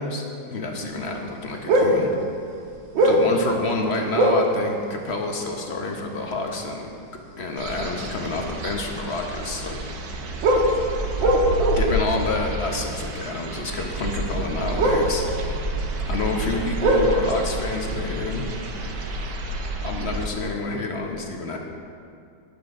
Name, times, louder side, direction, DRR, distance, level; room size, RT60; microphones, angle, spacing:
voice 1, 0.0-2.1 3.0-6.9 7.4-9.9 11.8-15.2 16.1-18.5 19.8-21.6, left 2 dB, 45° left, 2 dB, 1.0 m, -28 dB
sound 1, 1.7-2.1 2.7-3.4 4.1-4.6 5.7-5.8 6.3-6.5 8.3-8.4 10.4-12.0 12.3-12.4 14.7-16.0 16.3-18.6 18.9-19.2, right 1 dB, 85° right, 1.9 m, -20 dB
sound 2, 7.6-20.3, right 1 dB, 70° right, 1.6 m, -30 dB
18.0 x 7.4 x 3.7 m, 2.3 s
omnidirectional pair, 2.0 m